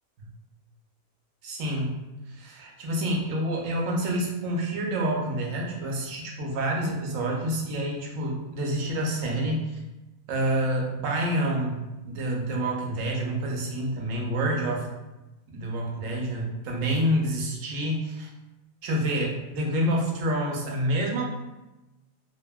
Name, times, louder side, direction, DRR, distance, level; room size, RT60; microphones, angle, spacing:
voice 1, 1.4-2.0 2.3-9.6 10.3-14.9 15.5-18.3 18.8-21.2, right 1 dB, 70° right, -1 dB, 0.9 m, -28 dB
2.6 x 2.5 x 2.2 m, 1.0 s
omnidirectional pair, 1.5 m